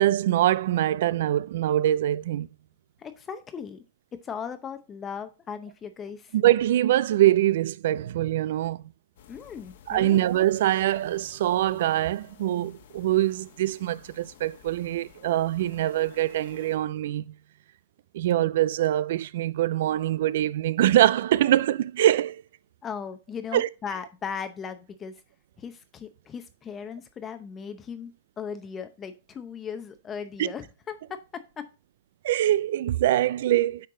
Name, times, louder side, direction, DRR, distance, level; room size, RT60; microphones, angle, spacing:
voice 1, 0.0-2.5 6.3-8.8 9.9-17.3 18.1-22.4 23.5-23.7 30.4-30.5 32.2-33.9, right 13 dB, 65° right, 0.4 m, -23 dB
voice 2, 3.0-3.8 4.2-6.3 9.3-10.3 22.8-25.1 25.6-28.1 28.4-31.6, left 7 dB, 20° left, 0.7 m, -37 dB
sound 1, 9.2-16.8, left 9 dB, 70° left, 1.4 m, -53 dB
8.4 x 4.6 x 3.7 m
hypercardioid pair, 135°, 0 cm